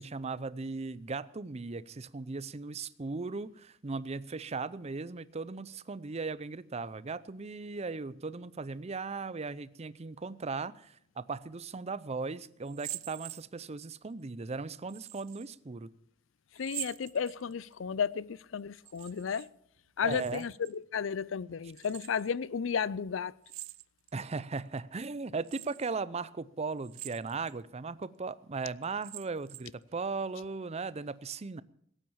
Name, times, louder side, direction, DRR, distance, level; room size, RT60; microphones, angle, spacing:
voice 1, 0.0-15.9 20.0-20.4 24.1-31.6, right 4 dB, 35° right, 0.5 m, -37 dB
sound 1, 12.6-13.9 14.9-15.5 16.6-17.7 18.8-19.5 19.8-20.7 21.7-22.3 23.4-24.2 24.8-24.9 25.4-25.9 26.8-27.6 28.0-28.1 28.8-29.8, right 17 dB, 85° right, 0.5 m, -45 dB
voice 2, 16.5-19.5 20.0-23.3, left 6 dB, 75° left, 0.5 m, -33 dB
17.0 x 9.1 x 7.2 m
head